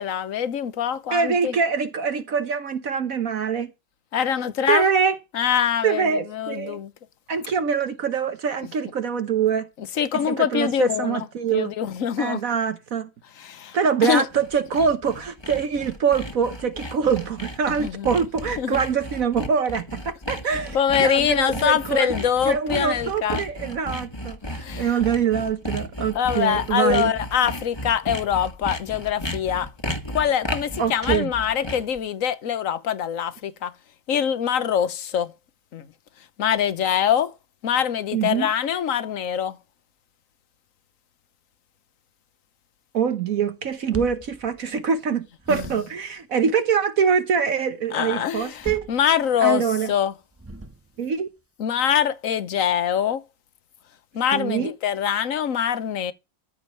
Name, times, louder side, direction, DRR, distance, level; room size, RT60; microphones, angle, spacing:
voice 1, 0.0-1.5 4.1-4.8 5.3-6.9 9.8-11.3 11.5-12.4 13.4-13.8 14.0-14.3 17.7-18.1 18.6-18.8 20.7-23.4 24.5-24.9 26.1-29.7 30.1-33.7 34.1-35.3 35.7-35.8 36.4-37.3 37.6-39.6 45.5-45.7 47.9-50.1 51.6-53.2 54.1-56.1, left 9 dB, 55° left, 1.4 m, -24 dB
voice 2, 1.1-3.7 4.7-5.2 5.8-6.8 7.3-9.7 10.3-11.7 12.2-13.1 13.7-27.1 30.8-31.3 38.1-38.5 42.9-48.9 49.4-49.9 51.0-51.3 54.3-54.7, right 6 dB, 60° right, 1.4 m, -24 dB
Sawing, 14.2-32.0, left 1 dB, 15° left, 1.6 m, -34 dB
sound 1, 43.6-45.1 45.4-46.2 48.3-49.6 50.3-51.1, right 2 dB, 20° right, 0.4 m, -40 dB
14.0 x 5.0 x 6.8 m
omnidirectional pair, 1.7 m